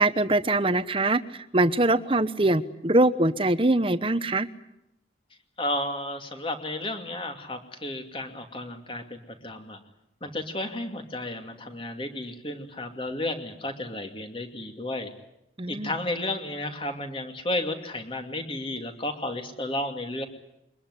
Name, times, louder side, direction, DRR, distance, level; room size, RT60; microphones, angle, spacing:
voice 1, 0.0-4.5 15.6-15.9, right 2 dB, 30° right, 13 dB, 1.0 m, -23 dB
voice 2, 5.6-9.8 10.2-15.1 15.7-20.2, left 1 dB, 30° left, 5 dB, 2.6 m, -33 dB
23.5 x 20.5 x 9.8 m, 0.85 s
head